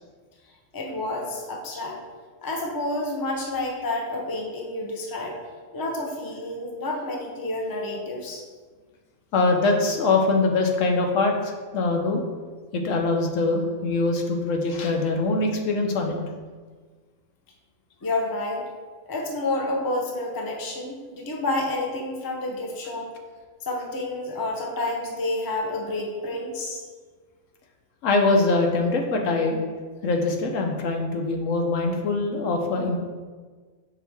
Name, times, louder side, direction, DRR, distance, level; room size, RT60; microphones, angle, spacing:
voice 1, 0.7-2.0 2.4-5.4 5.7-8.4 18.0-18.6 19.1-23.1 23.6-26.8, left 2 dB, 20° left, -1 dB, 0.6 m, -29 dB
voice 2, 9.3-12.2 12.7-16.2 28.0-29.6 30.0-33.0, left 3 dB, 75° left, 2 dB, 1.1 m, -23 dB
5.7 x 4.7 x 3.4 m, 1.5 s
omnidirectional pair, 1.3 m